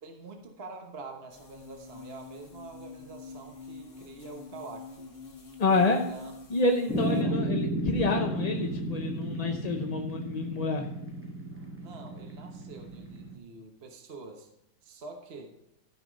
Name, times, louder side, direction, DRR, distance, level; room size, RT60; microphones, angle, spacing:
voice 1, 0.0-5.1 6.1-6.3 6.9-7.4 11.8-14.5 14.8-15.5, right 3 dB, 45° right, 3 dB, 1.3 m, -45 dB
sound 1, 1.3-7.2, left 4 dB, 55° left, 1.8 m, -46 dB
voice 2, 5.6-6.0 6.5-10.9, left 3 dB, 40° left, 3 dB, 0.6 m, -28 dB
sound 2, 6.9-13.3, right 1 dB, 10° right, 0.9 m, -33 dB
13.5 x 5.9 x 5.2 m, 0.85 s
omnidirectional pair, 1.5 m